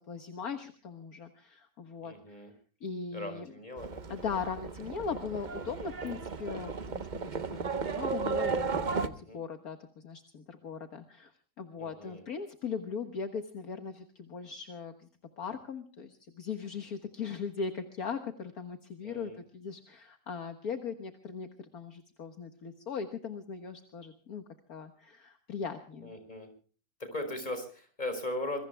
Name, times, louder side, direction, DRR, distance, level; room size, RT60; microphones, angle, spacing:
voice 1, 0.1-2.5 2.8-3.5 4.1-11.3 11.6-14.9 15.4-24.4 24.7-26.1, left 6 dB, 60° left, 7 dB, 1.8 m, -39 dB
voice 2, 2.0-2.5 3.1-4.0 5.8-6.2 9.3-9.4 11.8-12.2 19.0-19.4 26.0-26.5 27.0-28.6, left 1 dB, 25° left, 8 dB, 5.3 m, -39 dB
Livestock farm animals working animals, 3.8-9.1, right 5 dB, 35° right, 0.8 m, -34 dB
26.5 x 23.0 x 2.2 m, 0.39 s
omnidirectional pair, 1.8 m